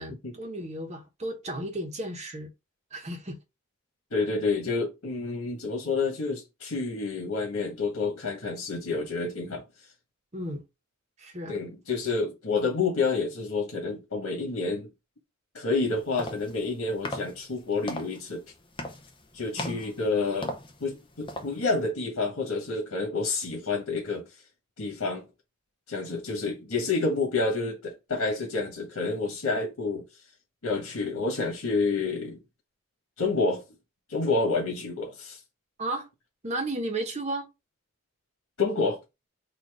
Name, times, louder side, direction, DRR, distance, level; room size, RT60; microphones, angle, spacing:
voice 1, 0.0-2.5 2.9-3.4 10.3-10.6 11.2-11.6 19.6-20.0 35.8-36.1 36.4-37.5, right 1 dB, 30° right, 1.0 m, -34 dB
voice 2, 4.1-9.6 11.5-14.9 15.5-18.4 19.3-20.5 20.8-24.3 24.8-25.3 25.9-30.0 30.6-32.4 33.2-33.6 34.1-35.4 38.6-39.0, left 3 dB, 85° left, 1.4 m, -29 dB
sound 1, 15.8-21.9, left 1 dB, 25° left, 0.6 m, -40 dB
4.2 x 2.6 x 4.8 m
head